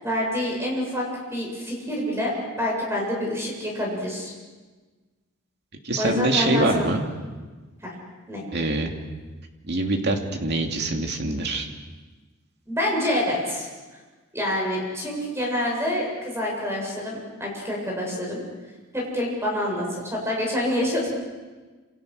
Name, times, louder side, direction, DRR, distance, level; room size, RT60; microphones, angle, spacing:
voice 1, 0.0-1.1 1.3-4.3 6.0-6.9 7.8-7.9 8.3-8.4 12.7-13.7 14.3-18.4 18.9-21.2, left 1 dB, 10° right, -1 dB, 7.6 m, -27 dB
voice 2, 5.8-7.1 8.5-8.9 9.6-11.7, right 2 dB, 50° right, 3 dB, 2.7 m, -24 dB
28.0 x 27.0 x 6.5 m, 1.3 s
head